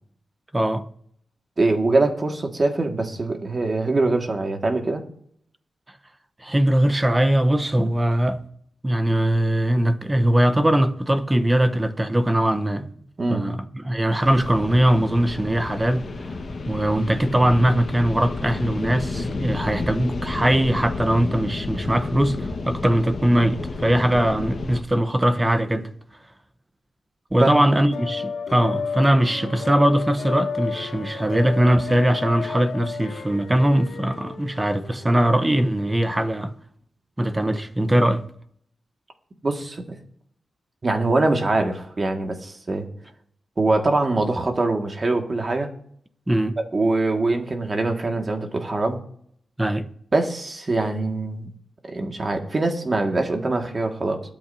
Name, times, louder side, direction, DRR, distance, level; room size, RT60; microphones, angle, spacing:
voice 1, 0.5-0.8 6.4-8.4 8.8-12.9 13.3-16.3 16.7-25.9 27.3-36.5 37.2-38.2 46.3-46.6 49.6-49.9, right 1 dB, 15° right, 0.9 m, -21 dB
voice 2, 1.6-5.0 13.2-13.4 27.4-27.5 39.4-40.0 40.8-42.9 43.6-45.7 46.6-49.0 50.1-51.5 51.9-54.2, right 2 dB, 35° right, 1.9 m, -23 dB
sound 1, 14.2-24.8, left 3 dB, 50° left, 1.4 m, -31 dB
sound 2, 27.9-35.5, left 5 dB, 85° left, 2.3 m, -32 dB
22.0 x 8.9 x 2.8 m
wide cardioid pair, 100°, 0 cm